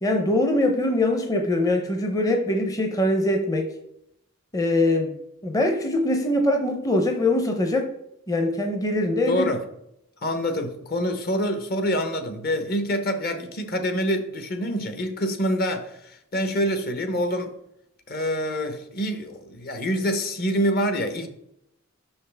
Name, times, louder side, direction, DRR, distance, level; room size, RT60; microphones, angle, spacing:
voice 1, 0.0-3.7 4.5-5.1 5.4-7.9 8.3-9.5, left 1 dB, 15° left, 0.6 m, -22 dB
voice 2, 9.3-9.6 10.2-17.5 18.1-21.3, equal, 50° left, 0.8 m, -26 dB
6.1 x 5.7 x 3.3 m
head